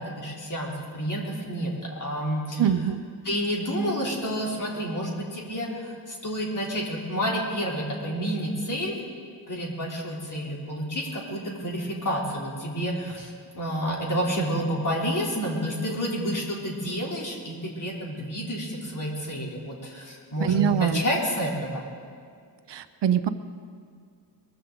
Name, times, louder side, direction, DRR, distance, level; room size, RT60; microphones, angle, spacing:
voice 1, 0.0-1.7 2.0-2.6 3.2-9.0 9.5-21.9, equal, 45° left, -3 dB, 3.5 m, -29 dB
voice 2, 2.6-3.0 20.4-21.0 22.7-23.3, right 9 dB, 75° right, 10 dB, 0.8 m, -24 dB
21.5 x 14.5 x 3.9 m, 2.1 s
wide cardioid pair, 125°, 43 cm